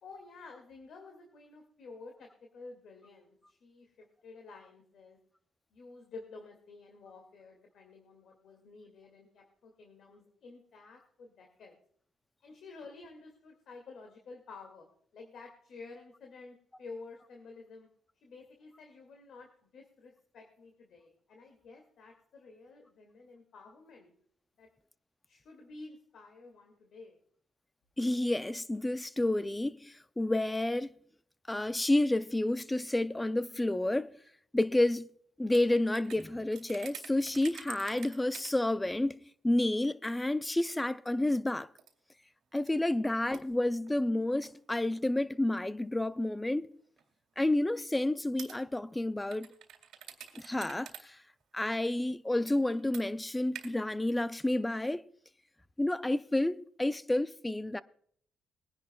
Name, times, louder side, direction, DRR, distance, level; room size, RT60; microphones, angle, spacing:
voice 1, 0.0-5.2 5.7-11.7 12.4-14.9 15.1-17.9 18.2-24.1 24.6-24.7 25.3-27.2 42.9-43.0, left 3 dB, 65° left, 2.1 m, -51 dB
voice 2, 28.0-30.9 31.5-34.1 34.5-35.1 35.4-39.2 39.4-41.7 42.5-46.7 47.4-49.5 50.4-51.2 51.5-55.0 55.8-57.8, left 1 dB, 10° left, 0.5 m, -30 dB
sound 1, 35.5-38.5 38.9-39.0 39.5-39.6 40.7-41.3 41.8-41.9 42.5-44.6 44.9-45.0 45.8-46.0 47.0-47.1 48.4-48.6 49.3-51.0 51.3-51.4 52.7-53.0 53.5-53.7, right 9 dB, 80° right, 2.0 m, -48 dB
22.0 x 10.5 x 2.3 m
cardioid pair, 90°, 0 cm